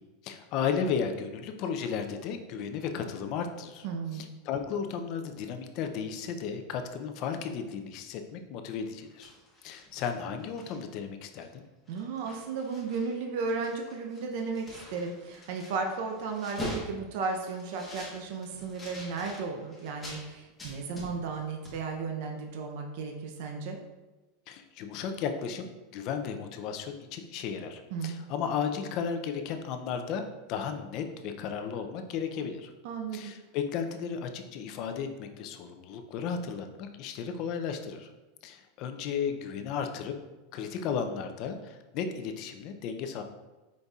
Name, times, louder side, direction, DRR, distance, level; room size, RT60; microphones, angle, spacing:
voice 1, 0.2-3.9 4.1-9.3 9.6-11.6 24.5-32.7 33.1-38.1 38.4-40.1 40.5-43.2, left 6 dB, 40° left, 6 dB, 0.4 m, -34 dB
voice 2, 3.8-4.3 11.9-23.8 27.9-28.2 32.8-33.3, right 4 dB, 55° right, 2 dB, 0.5 m, -34 dB
sound 1, 9.0-11.0 11.4-11.6 11.9-13.1 13.4-20.2 20.6-21.4 21.6-21.8, left 1 dB, 10° left, 1.1 m, -44 dB
5.1 x 4.0 x 2.3 m, 1.1 s
supercardioid pair, 165°, 0 cm